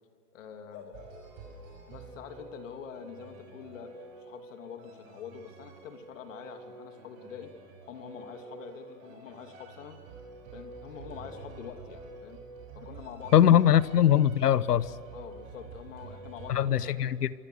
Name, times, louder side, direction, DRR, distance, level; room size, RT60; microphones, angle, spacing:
voice 1, 0.3-0.9 1.9-7.5 7.9-10.0 10.5-12.4 12.7-13.8 15.1-17.0, left 7 dB, 50° left, 6 dB, 3.1 m, -46 dB
sound 1, 0.7-6.1 8.4-9.8 10.1-10.2 10.8-13.0, left 3 dB, 30° left, 5.5 m, -56 dB
sound 2, 0.9-16.8, right 3 dB, 35° right, 6.2 m, -48 dB
voice 2, 13.3-14.9 16.5-17.3, left 10 dB, 75° left, 17 dB, 1.2 m, -21 dB
27.0 x 23.5 x 6.5 m, 2.2 s
hypercardioid pair, 150°, 48 cm